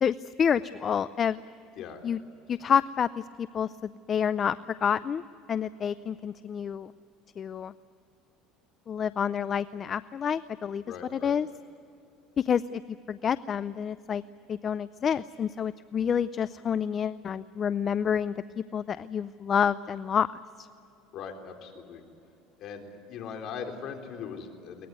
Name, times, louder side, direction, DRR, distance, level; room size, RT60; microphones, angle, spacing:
voice 1, 0.0-1.4 2.0-2.2 2.5-5.2 5.5-6.9 7.4-7.7 8.9-10.8 11.1-11.5 12.4-12.8 13.1-14.2 14.5-18.3 18.7-20.3 20.6-20.7, left 7 dB, 35° left, 16 dB, 0.5 m, -28 dB
voice 2, 10.9-11.3 21.1-22.0 22.6-24.9, left 6 dB, 50° left, 4 dB, 3.8 m, -40 dB
23.0 x 20.0 x 9.4 m, 2.7 s
cardioid pair, 125°, 0 cm